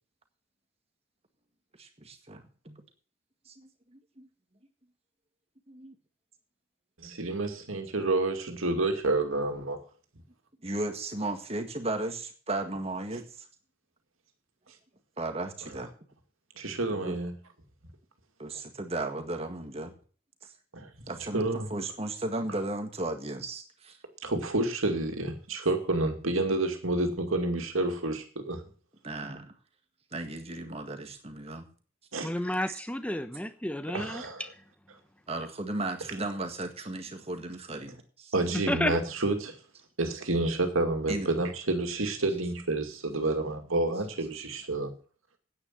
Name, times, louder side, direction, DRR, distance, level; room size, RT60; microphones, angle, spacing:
voice 1, 1.8-2.8 3.5-4.3 5.7-5.9 9.5-9.6 10.6-13.5 15.2-15.9 16.9-17.2 18.4-19.9 21.1-24.0 29.0-29.5 30.1-31.7 32.5-32.8 35.3-38.3 41.1-41.3, right 2 dB, 30° right, 1.8 m, -35 dB
voice 2, 7.0-9.8 16.6-17.3 20.7-20.9 21.3-21.7 24.2-28.6 32.1-32.3 33.9-34.4 38.3-39.5 40.0-44.9, right 2 dB, 80° right, 2.4 m, -29 dB
voice 3, 32.2-34.5 38.7-39.0, left 1 dB, 5° left, 0.9 m, -31 dB
10.0 x 9.4 x 7.5 m
head